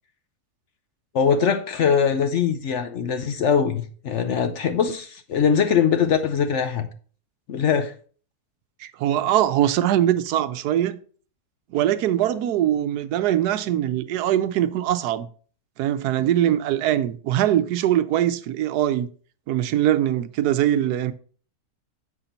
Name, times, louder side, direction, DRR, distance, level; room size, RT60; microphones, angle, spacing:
voice 1, 1.1-6.9 7.5-7.9, left 7 dB, 65° left, 0.8 m, -22 dB
voice 2, 8.8-11.0 11.7-15.3 15.8-19.1 19.5-21.1, right 11 dB, 85° right, 1.2 m, -22 dB
7.5 x 5.7 x 3.9 m
omnidirectional pair, 1.7 m